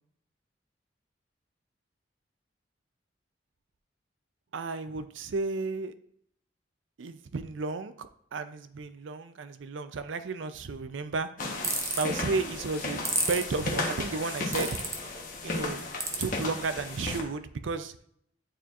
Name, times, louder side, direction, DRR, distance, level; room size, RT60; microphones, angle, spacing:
voice 1, 4.5-5.9 7.0-11.3 12.0-14.8 15.4-15.9 16.2-17.9, right 4 dB, 85° right, 11 dB, 0.5 m, -33 dB
sound 1, 11.4-17.2, left 2 dB, 45° left, 1.0 m, -35 dB
sound 2, 11.6-12.0 13.0-13.4 14.5-14.9 16.0-16.2, right 3 dB, 15° right, 0.7 m, -29 dB
9.1 x 4.3 x 2.5 m, 0.67 s
head